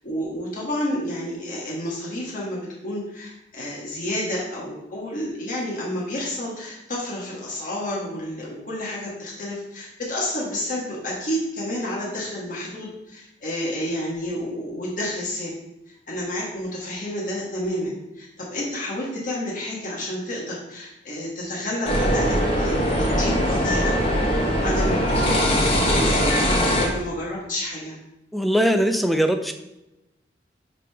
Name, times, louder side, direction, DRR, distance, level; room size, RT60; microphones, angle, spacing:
voice 1, 0.0-15.5 15.9-24.1 24.3-27.9, left 1 dB, 50° left, -5 dB, 1.4 m, -30 dB
sound 1, 21.9-26.9, equal, 30° left, 1.1 m, -21 dB
voice 2, 28.3-29.5, equal, ahead, 6 dB, 0.4 m, -20 dB
10.0 x 3.4 x 3.4 m, 0.92 s
head